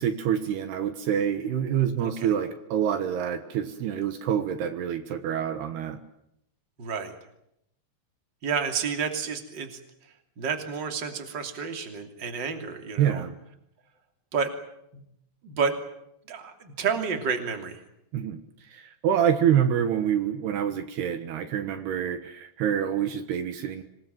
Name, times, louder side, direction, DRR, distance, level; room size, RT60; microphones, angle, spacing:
voice 1, 0.0-6.0 13.0-13.4 18.1-18.4 18.7-23.8, right 9 dB, 75° right, 9 dB, 3.3 m, -26 dB
voice 2, 2.0-2.3 6.8-7.1 8.4-13.2 14.3-14.5 14.9-15.0 15.4-15.8 16.3-17.8, right 6 dB, 30° right, 6 dB, 2.9 m, -30 dB
26.5 x 20.5 x 9.3 m, 0.79 s
omnidirectional pair, 4.9 m